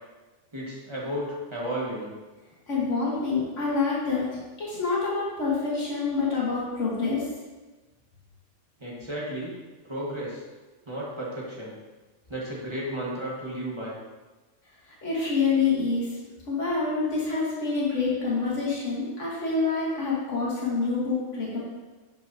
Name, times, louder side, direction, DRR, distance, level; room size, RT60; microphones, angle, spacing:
voice 1, 0.5-2.1 8.8-9.6 9.8-10.4 10.8-11.7 12.3-14.0, right 1 dB, 25° right, -5 dB, 1.4 m, -33 dB
voice 2, 2.7-7.3 14.8-16.1 16.5-21.6, left 4 dB, 75° left, -6 dB, 1.8 m, -27 dB
6.6 x 6.6 x 2.7 m, 1.2 s
omnidirectional pair, 1.3 m